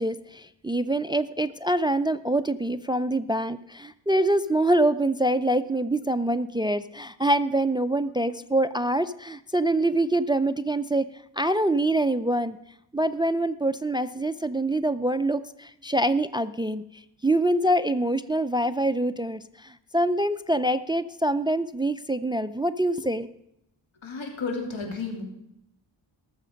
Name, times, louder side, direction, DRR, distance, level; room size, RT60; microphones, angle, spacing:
voice 1, 0.0-11.1 11.4-12.6 12.9-16.8 17.2-23.3, right 1 dB, 10° right, 14 dB, 0.4 m, -25 dB
voice 2, 24.0-25.2, left 4 dB, 80° left, 3 dB, 2.9 m, -32 dB
18.5 x 7.4 x 5.2 m, 0.82 s
wide cardioid pair, 85°, 45 cm